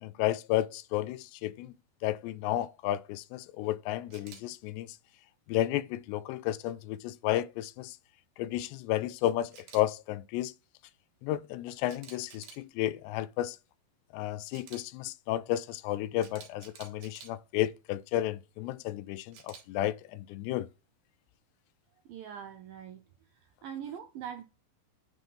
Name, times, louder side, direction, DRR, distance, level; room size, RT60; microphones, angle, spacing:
voice 1, 0.0-1.7 2.0-4.9 5.5-8.0 8.4-10.5 11.2-13.6 14.1-20.7, left 14 dB, 90° left, 2.8 m, -32 dB
Camera, 4.1-4.4 9.5-9.8 11.9-12.6 14.5-14.8 16.2-17.3 19.3-19.6, right 8 dB, 65° right, 3.1 m, -50 dB
voice 2, 22.1-23.0 23.4-24.4, right 9 dB, 90° right, 2.0 m, -42 dB
9.6 x 3.6 x 4.1 m
omnidirectional pair, 4.8 m